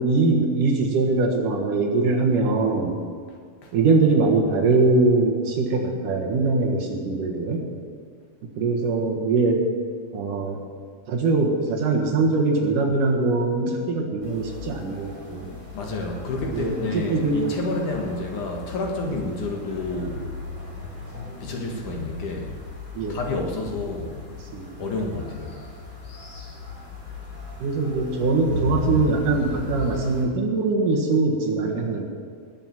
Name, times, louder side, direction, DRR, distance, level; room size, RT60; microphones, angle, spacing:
voice 1, 0.0-3.0 3.7-7.7 8.6-9.6 10.1-10.6 11.1-15.6 16.5-17.4 23.0-23.2 24.5-24.7 27.6-32.0, right 3 dB, 65° right, 0 dB, 2.8 m, -22 dB
sound 1, 14.2-30.2, left 2 dB, 35° left, 3.6 m, -37 dB
voice 2, 15.7-20.3 21.4-22.5 23.1-24.2 24.8-25.7, left 2 dB, 60° left, 1 dB, 2.8 m, -29 dB
20.0 x 6.7 x 7.6 m, 2.1 s
omnidirectional pair, 4.3 m